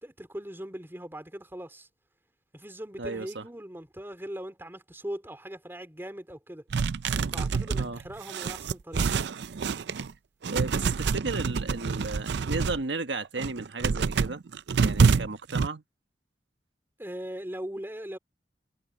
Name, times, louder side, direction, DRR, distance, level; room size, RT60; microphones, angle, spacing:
voice 1, 0.0-1.9 2.5-6.6 7.3-9.1 17.0-18.2, right 1 dB, 15° right, 3.2 m, -40 dB
voice 2, 3.0-3.4 7.8-8.0 10.5-14.4 14.8-15.8, right 3 dB, 85° right, 1.4 m, -34 dB
sound 1, 6.7-10.1 10.4-12.8 13.3-15.7, right 5 dB, 70° right, 0.5 m, -27 dB
head